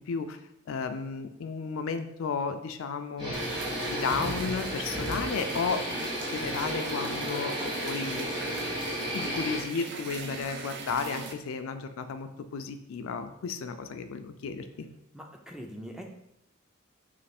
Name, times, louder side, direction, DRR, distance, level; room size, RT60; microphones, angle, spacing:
voice 1, 0.1-0.4 0.7-8.8 9.1-14.9, left 5 dB, 75° left, 8 dB, 0.4 m, -34 dB
sound 1, 3.2-9.6, equal, 20° right, 1.2 m, -33 dB
sound 2, 3.3-11.3, right 5 dB, 55° right, 0.5 m, -40 dB
voice 2, 15.1-16.0, equal, 5° right, 2 dB, 0.4 m, -42 dB
3.3 x 3.1 x 4.2 m, 0.78 s
head